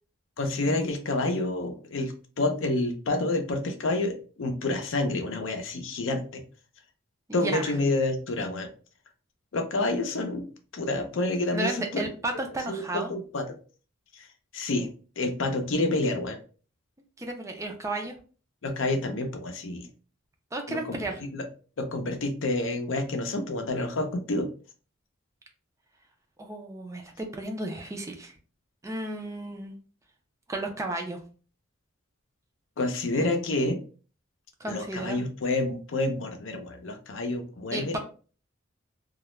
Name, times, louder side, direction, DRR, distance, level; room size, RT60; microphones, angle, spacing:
voice 1, 0.4-6.4 7.3-8.7 9.5-12.0 12.7-13.4 14.1-14.3 14.5-14.9 15.2-16.4 18.6-19.9 20.7-21.5 21.8-24.5 32.8-33.8 34.7-38.0, left 2 dB, 75° left, 5 dB, 0.5 m, -28 dB
voice 2, 7.3-7.7 11.5-13.1 17.2-18.2 20.5-21.1 26.4-28.3 28.8-29.8 30.5-31.2 34.6-35.2 37.7-38.0, right 2 dB, 15° right, 4 dB, 0.3 m, -33 dB
2.3 x 2.0 x 3.0 m, 0.38 s
head